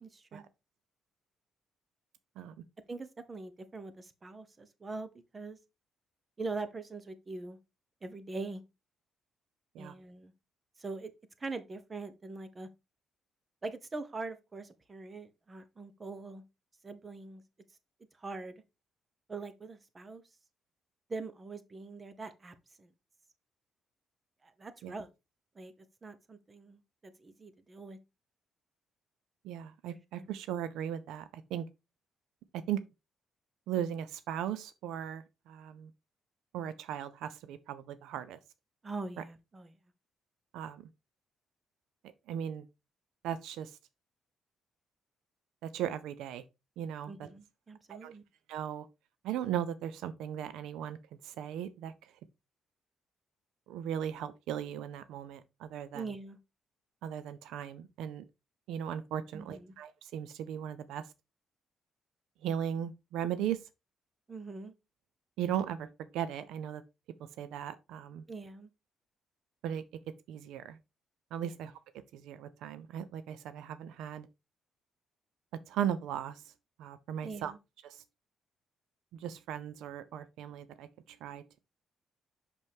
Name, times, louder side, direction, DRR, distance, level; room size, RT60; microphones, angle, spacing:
voice 1, 0.0-0.4 2.9-5.6 6.4-7.6 8.0-8.6 9.8-10.3 10.8-11.1 11.4-12.7 13.6-16.4 16.8-17.4 18.2-18.6 19.3-20.2 21.1-22.9 24.4-25.1 25.5-28.0 30.2-30.3 38.8-39.7 47.1-48.2 55.9-56.4 59.3-59.7 64.3-64.7 68.3-68.7 71.4-71.5 77.2-77.6, right 3 dB, 30° right, 1.0 m, -43 dB
voice 2, 29.4-31.6 32.7-32.8 33.7-35.9 36.5-38.4 40.5-40.8 42.3-42.7 43.2-43.7 45.6-46.4 46.8-47.3 47.9-48.1 48.5-48.9 49.2-51.0 51.2-51.9 53.7-56.0 57.0-58.2 58.7-61.0 62.4-63.6 65.4-65.9 66.1-66.8 67.4-68.2 69.6-69.8 70.3-70.8 71.3-71.7 72.1-74.3 75.7-76.4 76.8-77.5 77.8-78.0 79.2-81.6, right 10 dB, 90° right, 0.5 m, -37 dB
6.1 x 5.3 x 3.5 m
cardioid pair, 90°, 0 cm